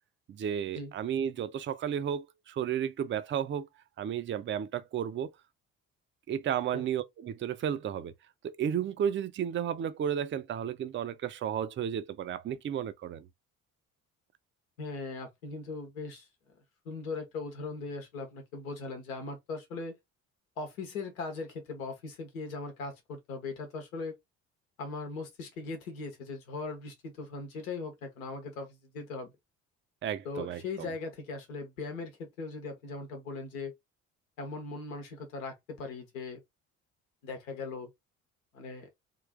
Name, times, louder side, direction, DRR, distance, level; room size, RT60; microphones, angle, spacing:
voice 1, 0.3-3.7 4.0-5.3 6.3-8.1 8.4-13.3 30.0-30.9, right 9 dB, 30° right, 0.5 m, -33 dB
voice 2, 14.8-16.3 16.8-20.0 20.6-24.2 24.8-29.3 30.2-33.7 34.4-36.4 37.2-37.9 38.5-38.9, left 3 dB, 80° left, 1.0 m, -39 dB
3.7 x 2.6 x 3.4 m
figure-of-eight pair, 50°, 41 cm